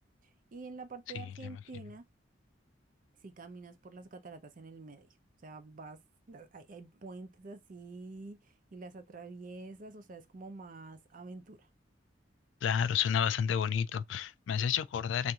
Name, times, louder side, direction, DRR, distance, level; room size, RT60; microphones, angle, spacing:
voice 1, 0.5-2.0 3.2-5.1 5.4-6.0 6.3-11.7, right 3 dB, 45° right, 0.5 m, -47 dB
voice 2, 1.1-1.5 12.6-15.3, left 8 dB, 85° left, 0.3 m, -31 dB
3.4 x 2.5 x 2.8 m
head